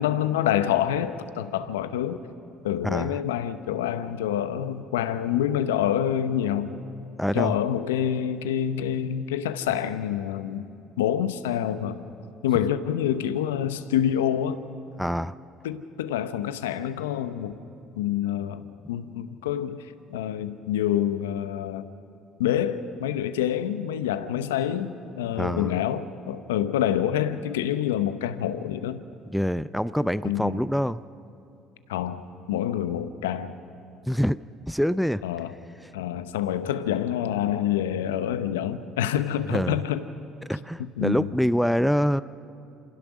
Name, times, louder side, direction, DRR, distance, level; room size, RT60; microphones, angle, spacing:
voice 1, 0.0-2.2 2.6-6.7 7.3-10.7 11.0-12.0 12.4-14.6 15.6-17.6 18.0-21.8 22.4-29.0 30.2-30.6 31.9-33.6 35.2-35.5 35.9-40.0 40.8-41.3, left 10 dB, 85° left, 12 dB, 0.8 m, -27 dB
voice 2, 2.8-3.2 7.2-7.6 15.0-15.4 25.3-25.8 29.3-31.0 34.1-35.2 35.8-35.9 39.5-39.8 40.5-42.2, equal, ahead, 16 dB, 0.5 m, -25 dB
27.0 x 16.0 x 6.2 m, 2.6 s
hypercardioid pair, 65°, 0 cm